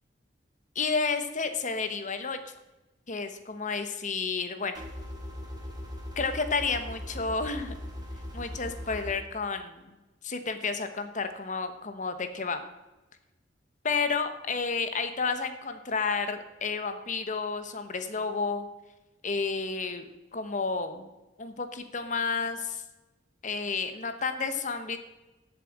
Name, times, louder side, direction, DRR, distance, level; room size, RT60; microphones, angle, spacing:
voice 1, 0.7-2.5 3.1-4.7 6.2-7.8 8.3-10.0 10.2-12.6 13.8-18.7 19.2-21.1 21.4-22.8 23.4-25.0, left 4 dB, 45° left, 9 dB, 1.1 m, -31 dB
sound 1, 4.7-9.1, left 1 dB, 20° right, 2.4 m, -39 dB
14.0 x 7.6 x 4.8 m, 1.0 s
head